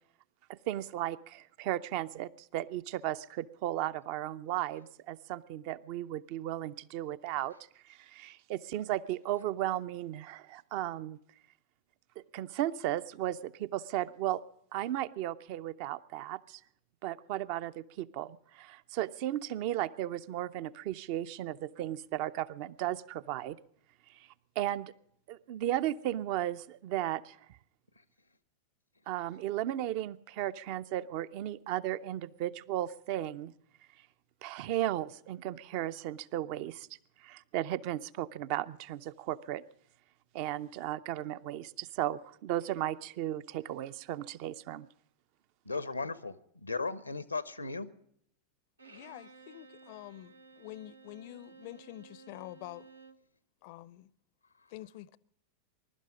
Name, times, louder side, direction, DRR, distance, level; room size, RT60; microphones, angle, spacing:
voice 1, 0.5-7.5 7.9-11.2 12.2-14.4 14.7-16.6 17.0-23.6 24.1-24.3 24.6-24.9 25.3-27.4 29.1-33.5 34.4-36.9 37.2-39.6 40.3-44.9, right 13 dB, 45° right, 0.5 m, -35 dB
voice 2, 45.7-47.9, left 4 dB, 85° left, 0.7 m, -36 dB
Bowed string instrument, 48.8-53.3, right 4 dB, 80° right, 0.8 m, -55 dB
voice 3, 48.9-52.9 53.6-54.1 54.7-55.2, left 16 dB, 45° left, 0.5 m, -47 dB
21.5 x 12.0 x 5.0 m
figure-of-eight pair, 90°, 0 cm